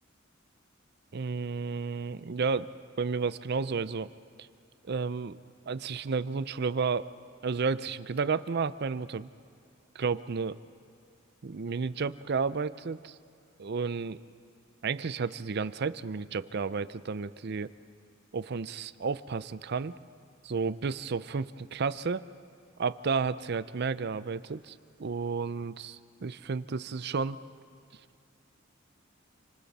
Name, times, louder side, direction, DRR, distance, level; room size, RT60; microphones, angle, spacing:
voice 1, 1.1-4.1 4.8-5.4 5.7-7.1 7.4-9.3 9.9-10.6 11.4-13.2 13.6-14.2 14.8-17.7 18.3-20.0 20.4-22.2 22.8-27.4, right 5 dB, 55° right, 15 dB, 0.5 m, -32 dB
28.5 x 25.5 x 4.2 m, 2.3 s
head